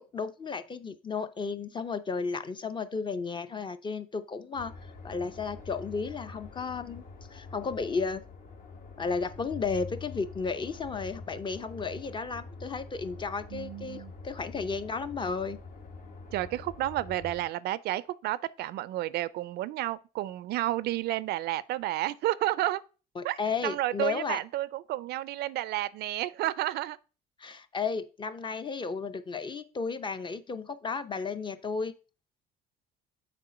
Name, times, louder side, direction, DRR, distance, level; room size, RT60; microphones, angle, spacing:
voice 1, 0.0-4.7 5.0-8.2 9.0-15.6 23.2-24.4 27.4-31.9, left 5 dB, 30° left, 0.6 m, -33 dB
sound 1, 4.5-17.4, left 3 dB, 55° left, 1.3 m, -45 dB
voice 2, 13.5-14.1 16.3-22.8 23.2-27.0, right 15 dB, 70° right, 0.4 m, -31 dB
6.7 x 4.3 x 5.0 m
cardioid pair, 110°, 17 cm